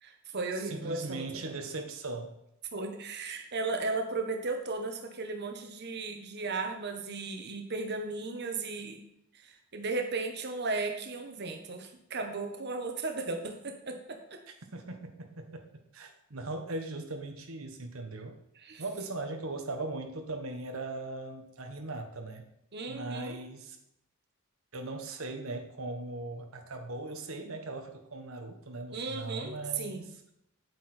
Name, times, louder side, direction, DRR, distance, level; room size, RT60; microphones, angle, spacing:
voice 1, 0.0-1.5 2.7-9.0 9.4-14.2 18.6-18.8 22.7-23.4 28.9-30.1, right 3 dB, 55° right, 4 dB, 1.3 m, -35 dB
voice 2, 0.5-2.3 14.7-18.4 18.8-22.5 22.9-23.8 24.7-30.2, right 2 dB, 85° right, 4 dB, 1.3 m, -39 dB
8.7 x 8.6 x 4.4 m, 0.80 s
head